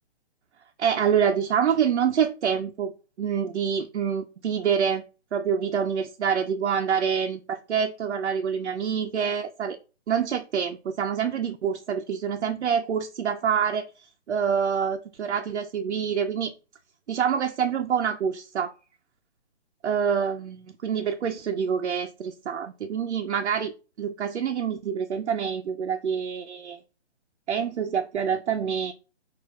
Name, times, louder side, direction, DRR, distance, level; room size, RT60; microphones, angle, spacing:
voice 1, 0.8-2.9 3.2-5.0 5.3-9.8 10.1-16.5 17.1-18.7 19.8-23.7 24.0-26.8 27.5-28.9, right 7 dB, 85° right, 0.5 m, -26 dB
6.0 x 2.5 x 2.4 m
hypercardioid pair, 150°, 34 cm